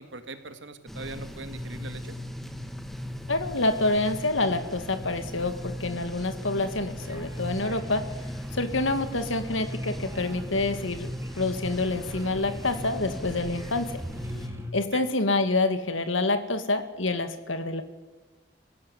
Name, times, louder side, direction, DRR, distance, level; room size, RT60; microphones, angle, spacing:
voice 1, 0.0-2.2 14.9-15.0, right 3 dB, 75° right, 9 dB, 2.0 m, -41 dB
sound 1, 0.9-14.5, equal, ahead, 1.4 m, -37 dB
voice 2, 3.3-8.1 8.5-11.1 11.4-14.0 14.7-17.8, left 2 dB, 90° left, 9 dB, 2.2 m, -27 dB
sound 2, 7.0-14.7, equal, 15° right, 3.1 m, -44 dB
26.5 x 16.0 x 9.9 m, 1.2 s
head